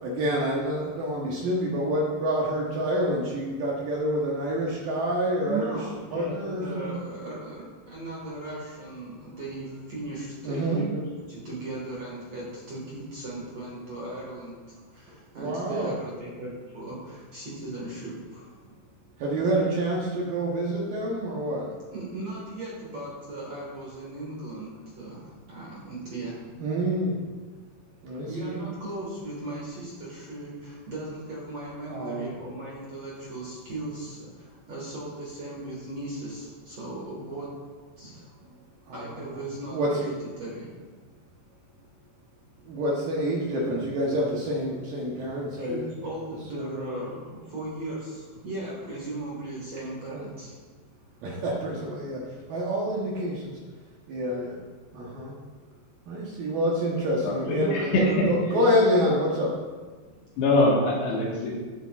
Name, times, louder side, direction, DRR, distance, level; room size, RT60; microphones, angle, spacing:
voice 1, 0.0-5.8 6.1-7.0 10.4-10.8 15.4-15.9 19.2-21.7 26.6-27.2 28.0-28.6 31.9-32.3 38.9-39.0 39.7-40.0 42.7-45.9 46.5-47.1 50.1-50.3 51.2-53.6 54.1-54.6 54.9-55.3 56.1-57.9 58.3-59.6, equal, 70° right, -4 dB, 2.3 m, -27 dB
voice 2, 5.3-18.8 21.9-26.5 28.3-37.5 38.0-38.3 38.9-40.7 45.6-50.6 57.4-58.2 58.5-58.8, right 2 dB, 50° right, -5 dB, 2.0 m, -37 dB
voice 3, 57.2-58.3 60.4-61.5, left 2 dB, 70° left, -4 dB, 3.5 m, -23 dB
13.0 x 8.1 x 2.4 m, 1.4 s
omnidirectional pair, 5.2 m